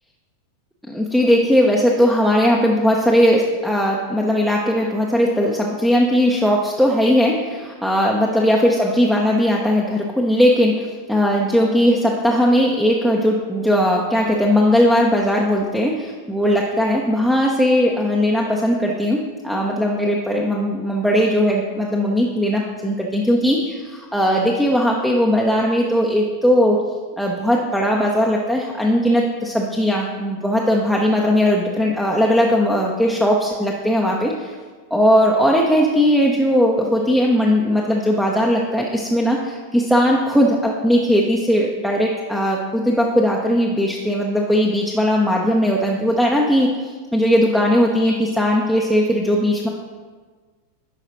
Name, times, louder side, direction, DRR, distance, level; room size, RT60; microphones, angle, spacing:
voice 1, 0.9-26.8 27.2-34.5 34.9-46.7 47.1-49.7, equal, ahead, -2 dB, 0.6 m, -18 dB
10.5 x 4.8 x 3.0 m, 1.5 s
figure-of-eight pair, 90°, 0 cm